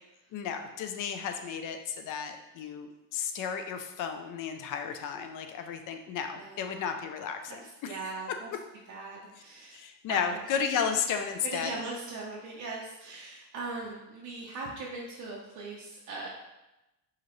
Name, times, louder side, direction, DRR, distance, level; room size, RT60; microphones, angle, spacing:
voice 1, 0.3-8.0 8.3-8.4 9.7-11.7, left 7 dB, 50° left, 6 dB, 0.5 m, -33 dB
voice 2, 6.4-6.9 7.5-7.6 7.8-8.5 8.9-10.4 11.4-16.3, right 3 dB, 45° right, -3 dB, 0.6 m, -40 dB
4.8 x 2.9 x 3.0 m, 0.98 s
cardioid pair, 140°, 42 cm